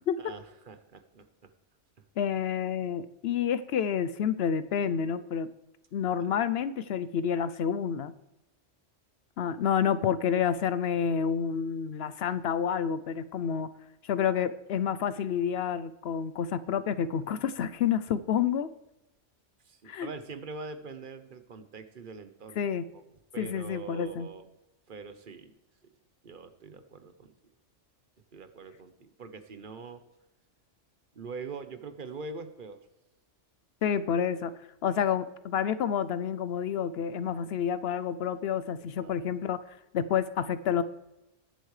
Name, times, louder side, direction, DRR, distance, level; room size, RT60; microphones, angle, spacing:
voice 1, 0.2-1.5 6.1-6.3 19.6-22.7 22.9-23.0 23.3-24.5 24.9-25.5 26.2-27.3 28.3-30.0 31.1-32.8 39.0-39.1, right 4 dB, 45° right, 9 dB, 1.0 m, -43 dB
voice 2, 2.2-5.5 5.9-8.1 9.4-13.7 14.0-18.7 19.9-20.1 22.6-22.9 23.4-24.3 33.8-34.5 34.8-39.6 39.9-40.8, left 8 dB, 65° left, 14 dB, 0.8 m, -29 dB
20.5 x 8.3 x 3.3 m, 0.93 s
omnidirectional pair, 1.3 m